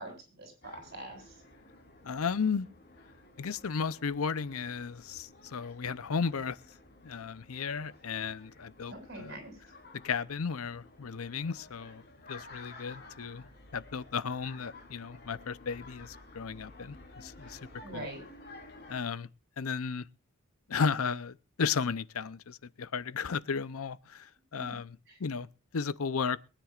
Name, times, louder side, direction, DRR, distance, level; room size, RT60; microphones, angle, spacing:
voice 1, 0.0-1.4 8.9-9.6 17.8-18.3 24.6-24.7 25.1-25.2, right 2 dB, 50° right, 7.3 m, -44 dB
sound 1, 0.6-19.0, left 2 dB, 45° left, 3.7 m, -53 dB
voice 2, 2.0-2.7 3.4-6.6 7.0-9.4 10.0-12.0 12.3-18.1 18.9-19.3 19.6-20.0 20.7-25.5 25.7-26.4, left 5 dB, 85° left, 0.6 m, -34 dB
23.0 x 10.0 x 2.4 m
head